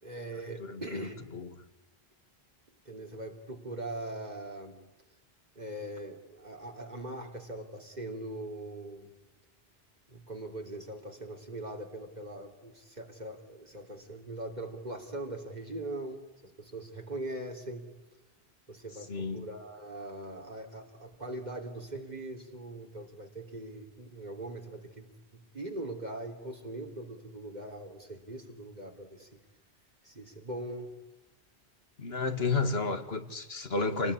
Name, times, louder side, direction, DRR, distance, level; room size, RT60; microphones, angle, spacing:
voice 1, 0.0-1.2 2.8-4.8 5.5-9.1 10.1-17.9 18.7-29.3 30.0-30.9 32.3-32.5, right 1 dB, 45° right, 2 dB, 3.4 m, -41 dB
voice 2, 0.6-1.5 19.1-19.5 32.0-34.1, left 3 dB, 80° left, 9 dB, 2.4 m, -32 dB
29.0 x 19.5 x 9.9 m, 1.1 s
omnidirectional pair, 1.0 m